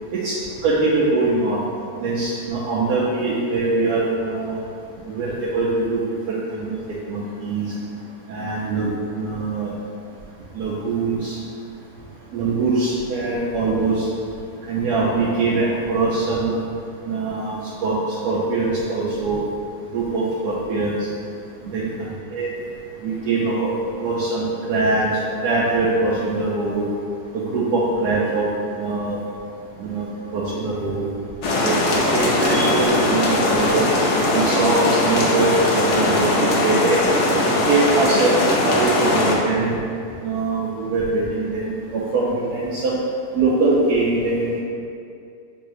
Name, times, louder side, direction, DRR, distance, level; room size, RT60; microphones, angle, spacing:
voice 1, 0.6-1.6 2.0-4.6 5.1-6.0 6.3-6.8 7.1-7.7 8.3-9.7 10.5-11.3 12.3-14.1 14.7-16.5 17.0-18.0 18.2-19.4 19.9-21.1 21.7-22.5 23.0-23.7 24.0-25.1 25.4-26.9 27.3-28.4 28.8-29.2 29.8-30.1 30.3-31.1 31.6-33.9 34.3-37.0 37.7-38.3 38.6-39.7 40.2-43.0 43.3-44.6, right 3 dB, 90° right, -6 dB, 1.2 m, -22 dB
sound 1, 31.4-39.4, left 1 dB, 60° left, 0.8 m, -20 dB
6.6 x 2.6 x 3.0 m, 2.5 s
omnidirectional pair, 1.7 m